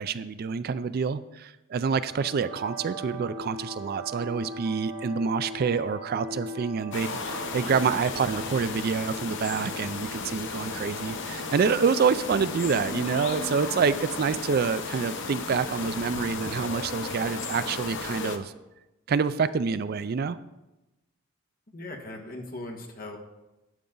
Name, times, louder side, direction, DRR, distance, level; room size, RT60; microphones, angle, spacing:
voice 1, 0.0-18.5 19.1-20.4, right 5 dB, 50° right, 14 dB, 0.4 m, -27 dB
sound 1, 2.0-16.1, equal, 75° right, 1.7 m, -42 dB
sound 2, 6.9-18.4, left 4 dB, 60° left, 0.9 m, -34 dB
voice 2, 21.7-23.2, left 2 dB, 45° left, 2 dB, 1.5 m, -39 dB
11.0 x 9.5 x 3.9 m, 0.99 s
head